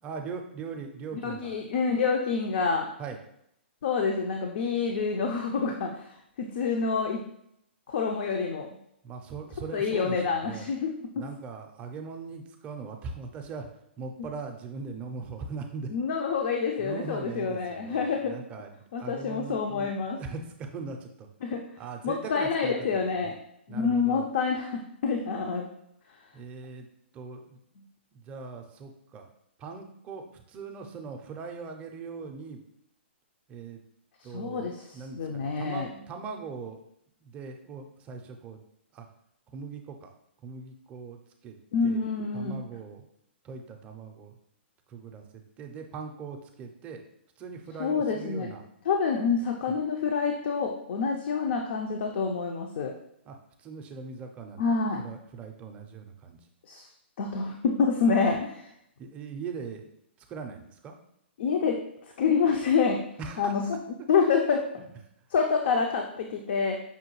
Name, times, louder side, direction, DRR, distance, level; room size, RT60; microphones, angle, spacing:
voice 1, 0.0-1.5 3.0-3.2 9.0-10.7 11.2-13.7 14.0-15.9 16.8-19.9 20.2-21.3 21.8-23.3 23.7-24.3 26.3-26.9 27.1-27.6 28.1-29.3 29.6-32.6 33.5-33.8 34.2-36.8 37.2-38.6 38.9-39.1 39.5-40.1 40.4-41.2 41.4-41.6 41.8-42.0 42.3-43.1 43.4-44.4 44.9-45.2 45.6-47.0 47.4-48.6 49.7-49.8 53.3-54.7 55.0-56.4 59.0-59.8 60.3-60.9 63.2-63.5 64.8-64.9, right 5 dB, 20° right, 3 dB, 0.4 m, -40 dB
voice 2, 1.1-2.9 3.8-7.2 7.9-8.7 9.7-11.2 14.2-14.3 15.9-18.4 18.9-20.2 21.4-21.6 22.0-23.3 23.7-25.7 34.3-35.9 41.7-42.5 47.8-48.5 48.9-52.9 54.6-55.0 56.7-56.8 57.2-58.7 61.4-61.8 62.2-63.0 63.4-63.6 64.1-64.6 65.3-66.8, left 5 dB, 60° left, 2 dB, 0.4 m, -27 dB
5.5 x 2.2 x 3.0 m, 0.75 s
hypercardioid pair, 145°, 6 cm